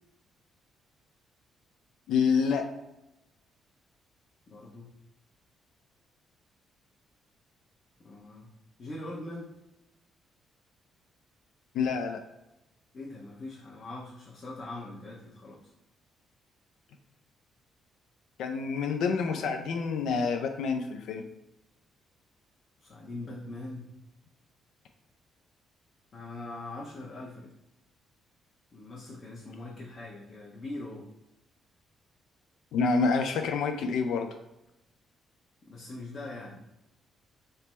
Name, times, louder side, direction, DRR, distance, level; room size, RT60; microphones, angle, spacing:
voice 1, 2.1-2.7 11.7-12.2 18.4-21.3 32.7-34.3, left 5 dB, 80° left, 5 dB, 0.3 m, -27 dB
voice 2, 4.5-4.9 8.0-8.5 8.8-9.5 12.9-15.7 22.8-23.9 26.1-27.5 28.7-31.1 35.7-36.6, left 2 dB, 45° left, -4 dB, 0.6 m, -42 dB
3.3 x 2.0 x 4.2 m, 0.91 s
cardioid pair, 90°, 0 cm